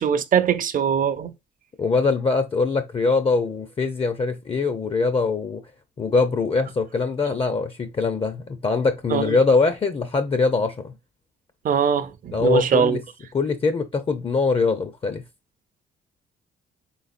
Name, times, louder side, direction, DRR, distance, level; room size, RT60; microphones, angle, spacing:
voice 1, 0.0-1.3 9.1-9.4 11.6-13.0, right 7 dB, 45° right, 0.6 m, -22 dB
voice 2, 1.8-5.6 6.0-10.9 12.3-13.0 13.3-15.2, left 4 dB, 30° left, 0.6 m, -22 dB
4.0 x 3.8 x 2.4 m
cardioid pair, 90°, 20 cm